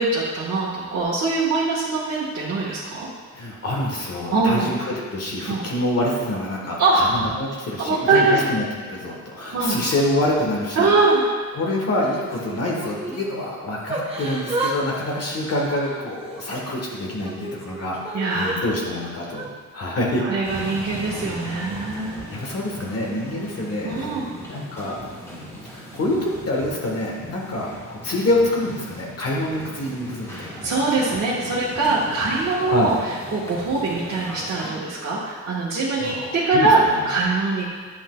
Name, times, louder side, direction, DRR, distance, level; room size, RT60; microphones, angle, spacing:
voice 1, 0.0-3.1 4.3-4.7 5.5-5.6 6.8-7.1 7.8-8.4 9.5-9.8 10.8-11.2 18.1-18.6 20.2-22.2 23.8-24.2 30.6-32.9 33.3-37.6, right 3 dB, 60° right, -8 dB, 1.4 m, -22 dB
voice 2, 3.3-10.9 11.5-20.2 22.3-24.2 24.5-30.6 32.7-32.9 36.0-37.0, left 1 dB, 55° left, -3 dB, 1.2 m, -26 dB
Yell / Crying sobbing, 12.0-13.3 13.9-14.8 15.0-16.4 16.9-18.5 19.2-19.5, right 2 dB, 20° right, 1.0 m, -31 dB
sound 1, 20.4-34.7, equal, 10° left, 2.0 m, -38 dB
10.0 x 5.7 x 2.2 m, 1.5 s
wide cardioid pair, 125°, 31 cm